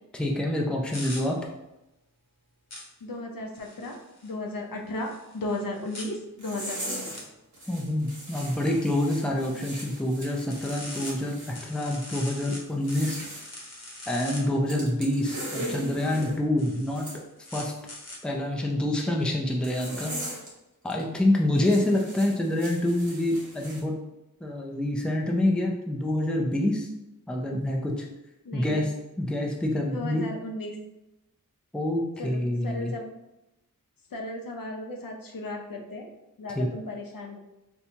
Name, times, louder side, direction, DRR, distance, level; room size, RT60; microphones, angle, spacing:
voice 1, 0.2-1.4 7.7-13.2 14.1-17.1 17.5-17.7 18.2-20.1 20.8-23.9 24.4-26.9 27.3-28.1 28.5-28.9 29.2-30.2 31.7-32.9 36.6-36.7, left 1 dB, 5° left, 0 dB, 0.5 m, -27 dB
sound 1, 0.9-1.2 2.7-2.8 3.5-4.3 5.0-6.0 7.1-7.2 10.5-11.1 11.5-12.6 12.9-14.4 15.4-16.3 16.6-18.2, left 1 dB, 45° left, 0.9 m, -42 dB
voice 2, 3.0-7.1 16.7-16.8 28.4-28.9 29.9-30.8 32.2-33.1 34.1-36.1 36.4-37.4, left 2 dB, 70° left, 1 dB, 0.6 m, -35 dB
sound 2, 6.4-7.2 7.5-11.6 12.7-13.4 14.7-16.4 17.0-17.2 19.6-20.5 20.8-21.0 21.6-23.8, right 1 dB, 55° right, 1.1 m, -39 dB
4.2 x 2.2 x 2.7 m, 0.94 s
wide cardioid pair, 75°, 35 cm